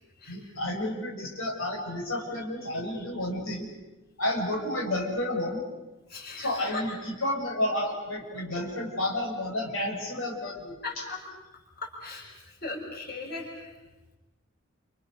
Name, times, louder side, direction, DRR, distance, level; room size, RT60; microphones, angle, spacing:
voice 1, 0.3-3.7 4.2-5.6 6.4-11.1, left 1 dB, 80° left, -1 dB, 6.1 m, -31 dB
voice 2, 6.1-6.8 10.8-11.2 12.0-12.3 12.6-13.7, left 3 dB, 50° left, 0 dB, 6.6 m, -37 dB
29.5 x 27.5 x 6.7 m, 1.1 s
head